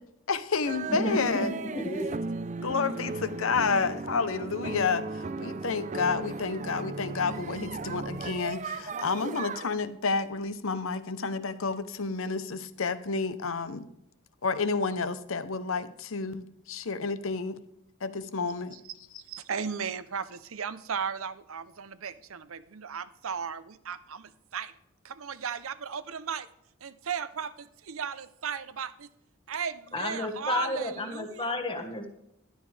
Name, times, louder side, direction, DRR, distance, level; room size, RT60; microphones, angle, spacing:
voice 1, 0.3-1.5 2.6-5.1 5.4-13.8 14.4-17.6 18.0-18.8, left 4 dB, 70° left, 13 dB, 0.8 m, -30 dB
sound 1, 0.7-9.8, right 3 dB, 35° right, 0.5 m, -36 dB
voice 2, 0.9-2.1 29.9-32.1, left 2 dB, 25° left, 5 dB, 1.5 m, -32 dB
voice 3, 19.3-24.7 25.0-26.5 26.8-29.1 29.5-31.5, right 6 dB, 75° right, 15 dB, 0.7 m, -36 dB
13.0 x 12.0 x 3.4 m, 0.80 s
head